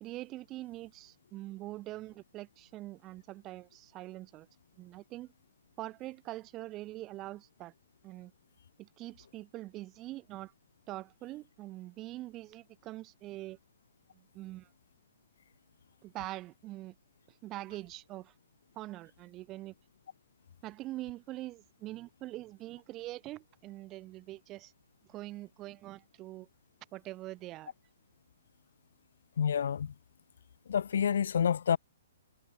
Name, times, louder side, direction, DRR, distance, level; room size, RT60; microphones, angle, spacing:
voice 1, 0.0-4.5 4.8-5.3 5.8-7.7 8.0-8.3 8.8-10.5 10.9-13.6 14.1-14.7 16.0-16.9 17.4-18.3 18.7-19.7 20.6-24.7 25.1-26.5 26.9-27.7, right 17 dB, 25° right, 1.4 m, -44 dB
voice 2, 29.4-29.9 30.7-31.8, left 8 dB, 70° left, 0.9 m, -28 dB
hypercardioid pair, 150°, 0 cm